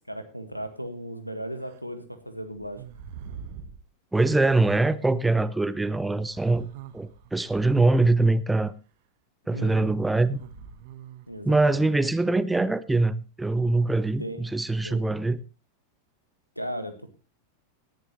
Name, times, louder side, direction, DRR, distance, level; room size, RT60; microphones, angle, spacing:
voice 1, 0.1-2.8 9.5-9.9 11.3-12.0 14.2-14.4 14.8-15.0 16.5-17.1, equal, 90° left, 1.7 m, -36 dB
sound 1, 1.6-1.8 2.5-3.8 5.0-5.1 6.2-8.0 10.1-11.6, right 7 dB, 50° right, 1.3 m, -44 dB
voice 2, 4.1-8.7 9.5-10.4 11.4-15.4, right 2 dB, 5° right, 0.7 m, -23 dB
18.0 x 11.0 x 3.1 m
figure-of-eight pair, 90°, 0 cm